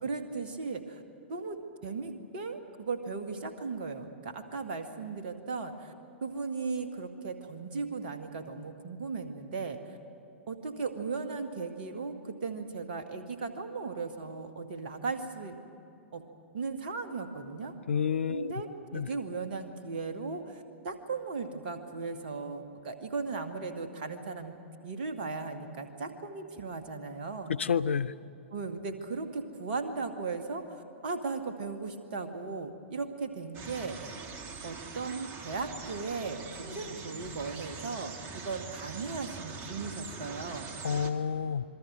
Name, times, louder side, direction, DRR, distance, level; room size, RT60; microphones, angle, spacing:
voice 1, 0.0-1.0 1.3-5.9 6.2-10.0 10.5-15.6 16.1-16.2 16.5-17.7 18.3-24.6 24.8-27.5 28.5-34.1 34.6-40.7, right 4 dB, 50° right, 6 dB, 2.2 m, -37 dB
voice 2, 17.9-18.5 18.9-19.1 27.5-28.1 40.8-41.6, left 7 dB, 70° left, 16 dB, 0.6 m, -29 dB
sound 1, 33.5-41.1, right 4 dB, 30° right, 1.8 m, -43 dB
27.0 x 22.5 x 6.5 m, 2.8 s
figure-of-eight pair, 105°, 7 cm